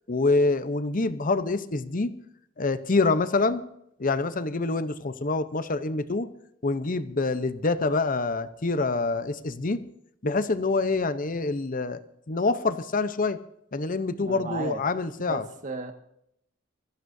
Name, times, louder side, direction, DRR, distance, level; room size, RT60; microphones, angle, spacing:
voice 1, 0.1-2.1 2.6-3.6 4.0-6.3 6.6-9.8 10.2-12.0 12.3-13.4 13.7-15.4, left 3 dB, 45° left, 12 dB, 0.9 m, -26 dB
voice 2, 14.2-14.8 15.3-15.9, right 3 dB, 40° right, 6 dB, 1.8 m, -34 dB
24.5 x 16.0 x 2.7 m, 0.75 s
head